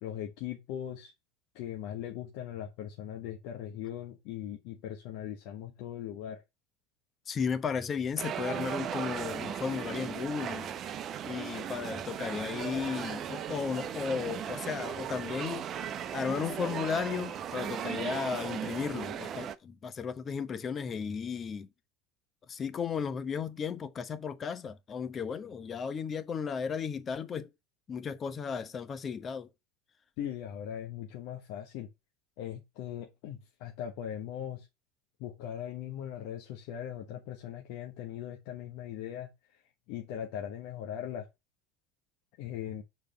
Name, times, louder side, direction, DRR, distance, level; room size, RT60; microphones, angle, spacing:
voice 1, 0.0-1.1 1.5-6.4 30.2-31.9 32.4-34.7 35.2-39.6 39.9-41.3 42.4-42.8, left 10 dB, 60° left, 1.2 m, -39 dB
voice 2, 7.3-10.7 11.2-15.7 16.1-21.7 22.5-27.5 27.9-29.5, left 6 dB, 35° left, 0.9 m, -35 dB
sound 1, 8.2-19.6, right 9 dB, 40° right, 0.8 m, -37 dB
6.8 x 4.1 x 5.1 m
hypercardioid pair, 80°, 0 cm